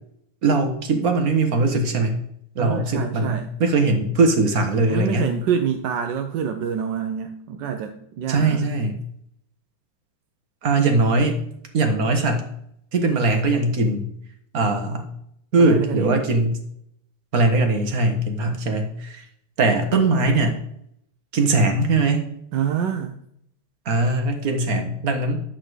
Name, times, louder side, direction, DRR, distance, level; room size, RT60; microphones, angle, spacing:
voice 1, 0.4-2.2 2.6-5.3 8.3-9.0 10.6-11.3 11.7-12.5 12.9-14.1 14.5-15.1 15.5-16.6 17.3-19.2 19.6-20.6 21.3-22.3 23.9-25.4, right 3 dB, 45° right, 5 dB, 1.8 m, -20 dB
voice 2, 2.6-3.5 4.9-8.7 15.6-16.3 22.5-23.2, right 8 dB, 65° right, 6 dB, 1.3 m, -26 dB
12.0 x 4.3 x 8.0 m, 0.72 s
omnidirectional pair, 2.4 m